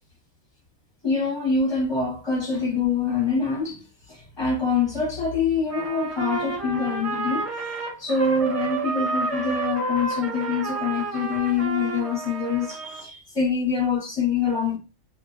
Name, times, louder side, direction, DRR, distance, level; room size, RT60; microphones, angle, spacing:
voice 1, 1.0-7.5 8.0-14.8, left 5 dB, 20° left, 0.9 m, -25 dB
Trumpet, 5.7-13.0, right 3 dB, 30° right, 0.7 m, -30 dB
2.8 x 2.5 x 2.5 m
omnidirectional pair, 1.8 m